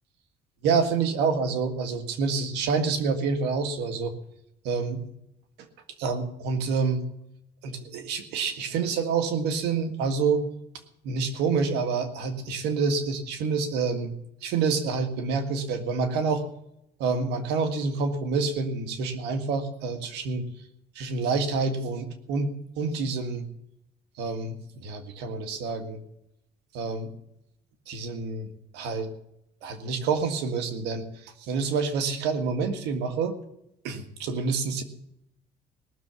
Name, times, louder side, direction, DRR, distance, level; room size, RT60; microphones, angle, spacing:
voice 1, 0.6-4.1 4.6-5.0 6.0-7.0 7.6-10.4 11.0-14.1 14.4-16.4 17.0-20.5 21.0-23.5 24.2-26.0 26.7-27.1 27.9-29.1 29.6-33.4 33.8-34.8, right 4 dB, 90° right, 7 dB, 1.9 m, -27 dB
18.5 x 7.0 x 7.5 m, 0.79 s
cardioid pair, 110°, 17 cm